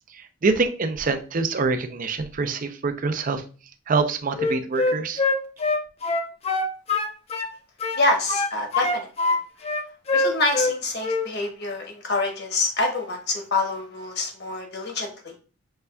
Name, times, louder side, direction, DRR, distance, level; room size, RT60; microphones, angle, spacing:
voice 1, 0.1-3.4 3.9-5.2, right 4 dB, 40° right, 9 dB, 0.5 m, -25 dB
Wind instrument woodwind instrument, 4.3-7.5 7.8-9.4 9.6-10.8 11.0-11.3, left 3 dB, 30° left, 0.5 m, -24 dB
voice 2, 8.0-9.1 10.1-15.3, left 2 dB, 55° left, 2 dB, 1.1 m, -26 dB
5.5 x 3.3 x 2.2 m, 0.36 s
head